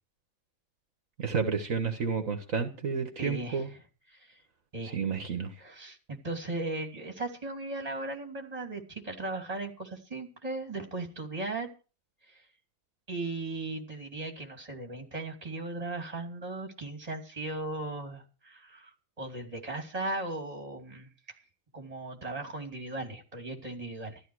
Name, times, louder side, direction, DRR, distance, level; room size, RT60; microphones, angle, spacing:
voice 1, 1.2-3.7 4.8-5.5, right 5 dB, 65° right, 6 dB, 1.8 m, -31 dB
voice 2, 3.2-3.6 4.1-4.4 4.7-5.0 5.6-11.7 12.2-12.4 13.1-21.1 21.7-24.2, right 2 dB, 25° right, 3 dB, 2.9 m, -37 dB
13.5 x 13.0 x 4.8 m, 0.35 s
omnidirectional pair, 1.5 m